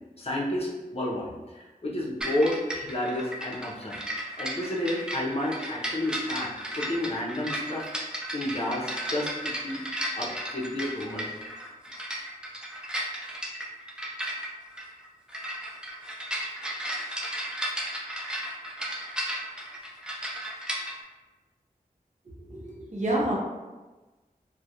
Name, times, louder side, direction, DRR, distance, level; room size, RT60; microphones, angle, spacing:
voice 1, 0.2-4.0 4.4-7.9 8.3-9.8 10.2-11.3, left 1 dB, 45° left, -4 dB, 0.6 m, -31 dB
sound 1, 2.2-21.0, equal, 5° right, 0.4 m, -34 dB
voice 2, 22.5-23.4, right 1 dB, 50° right, -3 dB, 0.6 m, -28 dB
2.3 x 2.1 x 2.7 m, 1.2 s
wide cardioid pair, 70°, 15 cm